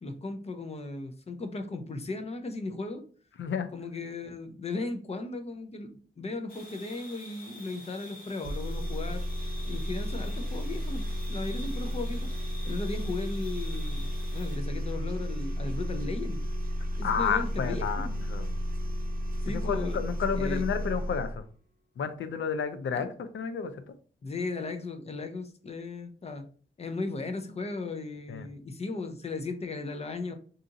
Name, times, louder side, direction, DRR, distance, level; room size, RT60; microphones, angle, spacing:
voice 1, 0.0-3.0 3.7-9.2 9.7-12.3 12.6-16.4 17.0-18.1 19.4-20.1 20.3-20.6 24.2-26.4 26.8-30.3, left 3 dB, 35° left, 6 dB, 0.4 m, -36 dB
sound 1, 6.5-14.6, left 1 dB, 50° left, 0.9 m, -48 dB
sound 2, 8.4-21.4, equal, 45° right, 0.6 m, -33 dB
voice 2, 17.0-18.5 19.5-21.4 22.0-23.8 28.3-28.5, left 6 dB, 90° left, 10 dB, 0.5 m, -31 dB
2.7 x 2.4 x 3.8 m, 0.42 s
wide cardioid pair, 165°, 19 cm